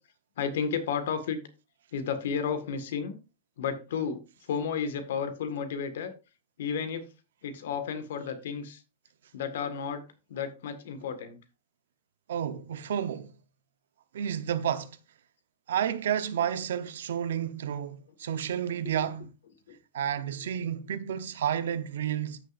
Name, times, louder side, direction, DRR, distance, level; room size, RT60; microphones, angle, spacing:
voice 1, 0.4-1.4 1.9-3.2 3.6-6.1 6.6-7.1 7.4-8.8 9.3-10.0 10.3-11.4 18.3-18.4 18.8-18.9 19.7-19.8, left 6 dB, 65° left, 1.7 m, -32 dB
voice 2, 12.3-13.3 14.1-15.0 15.7-19.3 19.9-22.4, right 9 dB, 80° right, 0.9 m, -31 dB
14.0 x 6.5 x 2.6 m
supercardioid pair, 180°, 0 cm